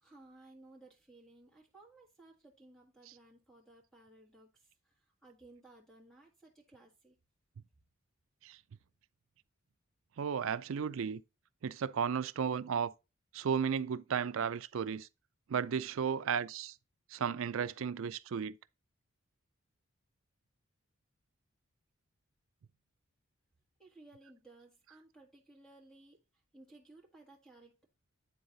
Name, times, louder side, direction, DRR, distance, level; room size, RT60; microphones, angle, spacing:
voice 1, 0.0-7.1 23.8-26.2 26.5-27.9, right 2 dB, 5° left, 1.6 m, -59 dB
voice 2, 10.2-11.2 11.6-12.9 13.3-15.1 15.5-16.7 17.1-18.6, right 7 dB, 70° right, 0.4 m, -34 dB
9.5 x 3.9 x 3.9 m
head